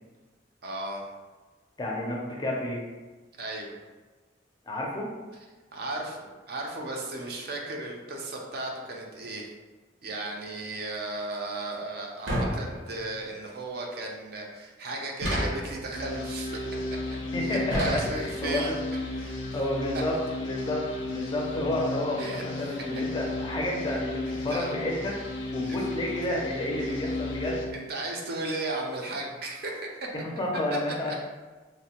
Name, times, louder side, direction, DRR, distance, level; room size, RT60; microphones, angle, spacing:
voice 1, 0.6-1.1 3.4-3.7 5.7-9.5 10.0-16.5 17.4-18.8 19.1-19.4 22.2-22.7 24.3-24.7 25.6-25.8 27.7-30.1 30.7-30.8 31.1-31.2, right 2 dB, 55° right, 0 dB, 0.5 m, -35 dB
voice 2, 1.8-2.8 4.7-5.1 17.3-18.6 19.5-25.2 25.5-27.6 30.1-31.1, left 1 dB, 20° left, -2 dB, 0.4 m, -30 dB
sound 1, 12.3-13.2 15.2-15.9 17.7-18.5, equal, 85° right, 0.8 m, -30 dB
sound 2, 15.9-27.7, left 2 dB, 90° left, 0.5 m, -34 dB
3.0 x 2.1 x 2.8 m, 1.3 s
head